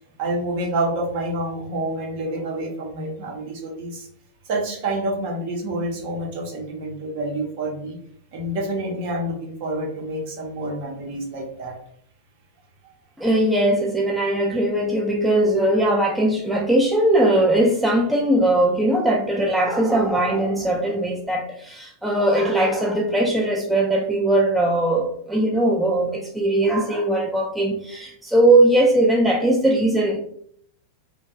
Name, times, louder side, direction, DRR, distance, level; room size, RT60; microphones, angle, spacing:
voice 1, 0.2-4.1 4.4-8.0 8.3-11.8 12.8-12.9, right 1 dB, 50° right, -1 dB, 0.8 m, -28 dB
voice 2, 13.2-30.2, right 1 dB, 5° right, -2 dB, 0.3 m, -20 dB
2.8 x 2.2 x 2.4 m, 0.66 s
figure-of-eight pair, 90°, 0 cm